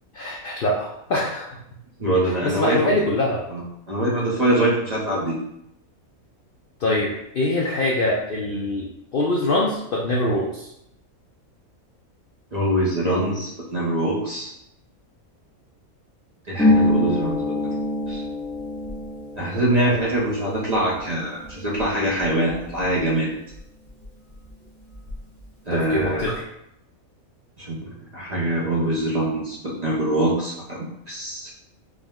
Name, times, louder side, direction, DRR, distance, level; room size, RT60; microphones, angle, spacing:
voice 1, 0.1-1.6 2.4-3.4 6.8-10.7 19.8-19.9 25.7-26.4, left 1 dB, 65° left, -2 dB, 0.5 m, -24 dB
voice 2, 2.0-2.9 3.5-3.6 3.9-5.4 12.5-14.5 16.5-17.6 18.1-18.2 19.4-23.3 25.7-26.3 27.6-31.5, right 1 dB, 40° right, -5 dB, 0.6 m, -24 dB
Harp, 16.6-24.0 24.3-25.4 25.7-26.3, left 2 dB, 5° left, 0.5 m, -27 dB
4.9 x 2.1 x 3.5 m, 0.80 s
omnidirectional pair, 1.5 m